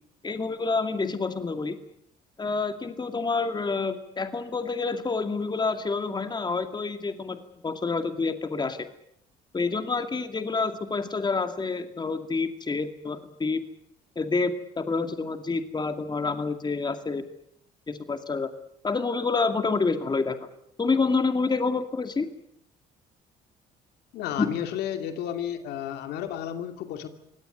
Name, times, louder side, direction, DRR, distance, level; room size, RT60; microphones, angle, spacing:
voice 1, 0.2-1.8 2.4-8.8 9.5-13.6 14.2-17.2 17.9-18.5 18.8-20.4 20.8-22.3 24.4-24.5, left 4 dB, 25° left, 9 dB, 2.4 m, -28 dB
voice 2, 24.1-27.1, left 10 dB, 80° left, 8 dB, 2.6 m, -32 dB
25.0 x 17.5 x 9.3 m, 0.75 s
cardioid pair, 85°, 17 cm